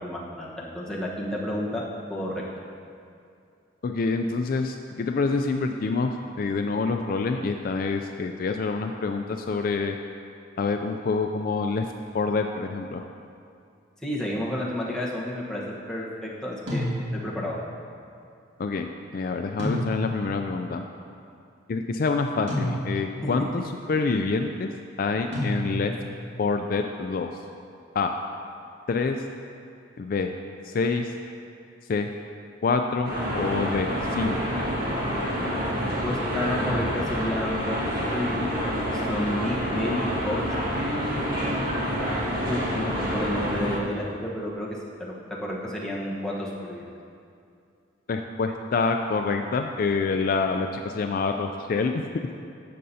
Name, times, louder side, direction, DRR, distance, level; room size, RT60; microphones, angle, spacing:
voice 1, 0.0-1.8 2.1-2.4 14.0-15.6 15.9-16.9 17.1-17.6 36.0-40.4 40.7-41.9 42.4-45.1 45.4-46.8, left 1 dB, 5° left, -5 dB, 1.1 m, -31 dB
voice 2, 3.8-6.1 6.4-10.0 10.6-11.8 12.1-13.0 18.6-20.8 21.7-23.6 23.9-24.7 25.0-25.9 26.4-27.3 27.9-28.1 28.9-29.2 30.0-30.3 30.6-31.1 31.9-32.1 32.6-34.4 48.1-52.0, left 4 dB, 50° left, 5 dB, 0.3 m, -26 dB
sound 1, 16.7-17.4 19.6-20.4 22.5-23.2 25.3-26.1, equal, 70° right, 2.2 m, -30 dB
sound 2, 33.0-43.8, equal, 55° right, 1.7 m, -28 dB
12.0 x 7.5 x 2.8 m, 2.4 s
head